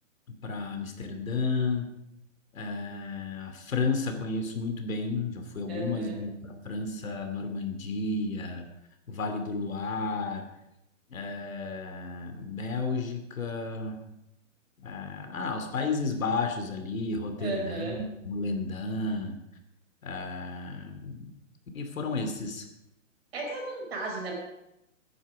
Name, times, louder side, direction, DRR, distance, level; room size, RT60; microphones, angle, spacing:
voice 1, 0.3-1.9 2.5-8.7 9.1-10.4 11.1-14.0 14.8-19.3 20.0-21.3 21.7-22.6, left 3 dB, 90° left, 6 dB, 2.8 m, -32 dB
voice 2, 5.7-6.2 17.4-18.0 23.3-24.4, right 3 dB, 50° right, -1 dB, 5.2 m, -35 dB
16.0 x 10.0 x 5.0 m, 0.87 s
hypercardioid pair, 175°, 39 cm